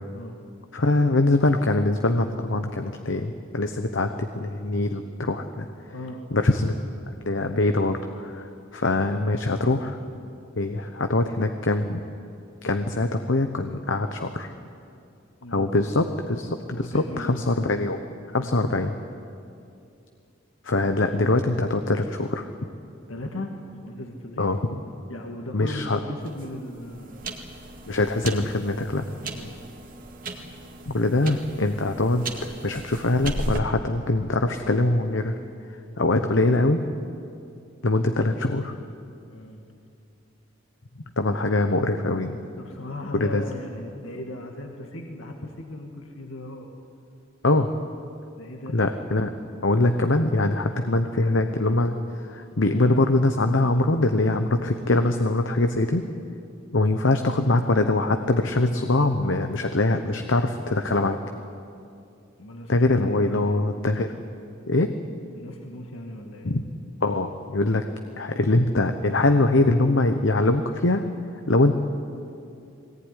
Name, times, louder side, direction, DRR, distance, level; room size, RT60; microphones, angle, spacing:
voice 1, 0.7-5.7 6.3-6.7 7.2-10.0 10.6-12.0 12.6-14.5 15.5-18.0 18.3-18.9 20.6-22.4 24.4-24.6 25.5-26.0 27.9-29.0 30.9-35.3 36.0-36.8 37.8-38.7 41.2-42.4 43.2-43.4 47.4-47.7 48.7-49.3 49.6-56.0 56.7-61.2 62.7-64.2 64.7-64.9 66.4-66.6 67.0-67.8 68.2-71.1 71.5-71.7, left 2 dB, 65° left, 7 dB, 1.0 m, -23 dB
voice 2, 5.9-6.2 15.4-15.7 16.8-17.4 18.3-18.5 23.1-23.5 23.8-24.5 25.1-27.2 29.3-29.6 39.2-39.6 42.5-46.7 48.4-48.8 62.4-62.7 63.1-63.6 65.3-66.5, left 1 dB, 80° left, 2 dB, 1.9 m, -37 dB
sound 1, 26.2-33.6, right 2 dB, 45° right, 2.1 m, -37 dB
21.5 x 18.0 x 10.0 m, 2.5 s
head